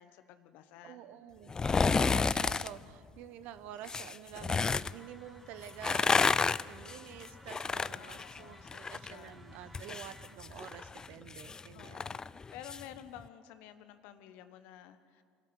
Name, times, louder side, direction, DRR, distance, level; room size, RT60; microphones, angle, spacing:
voice 1, 0.0-1.0 7.6-9.4 11.7-15.2, left 11 dB, 65° left, 11 dB, 1.3 m, -52 dB
voice 2, 0.8-12.1, right 11 dB, 65° right, 13 dB, 1.1 m, -49 dB
sound 1, 1.5-2.7 3.8-4.9 5.7-9.1 9.4-12.8 13.2-13.3, left 4 dB, 25° left, 0.5 m, -31 dB
sound 2, 4.6-10.4, equal, ahead, 3.1 m, -58 dB
27.0 x 13.0 x 8.3 m, 2.2 s
hypercardioid pair, 65°, 3 cm